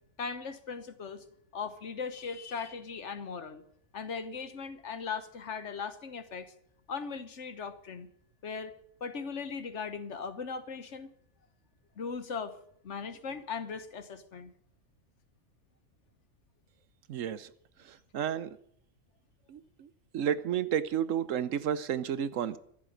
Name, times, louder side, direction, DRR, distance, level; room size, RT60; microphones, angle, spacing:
voice 1, 0.2-1.2 1.5-3.6 3.9-6.5 6.9-8.1 8.4-8.7 9.0-11.1 12.0-12.6 12.8-14.5, left 5 dB, 60° left, 1.3 m, -38 dB
voice 2, 17.1-17.5 17.9-18.5 19.5-19.9 20.1-22.6, right 9 dB, 70° right, 1.1 m, -31 dB
14.0 x 7.6 x 9.1 m
omnidirectional pair, 1.4 m